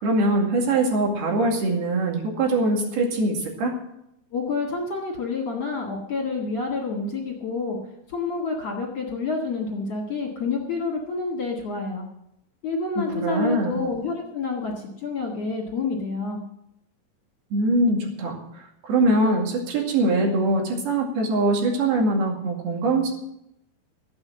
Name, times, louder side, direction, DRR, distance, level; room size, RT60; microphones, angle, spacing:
voice 1, 0.0-3.7 13.1-13.8 17.5-18.3 18.8-23.2, right 2 dB, 55° right, 1 dB, 3.9 m, -22 dB
voice 2, 4.3-7.8 8.1-12.0 12.6-14.7 15.0-16.4, left 4 dB, 50° left, -2 dB, 2.0 m, -28 dB
14.5 x 8.9 x 7.5 m, 0.82 s
omnidirectional pair, 5.7 m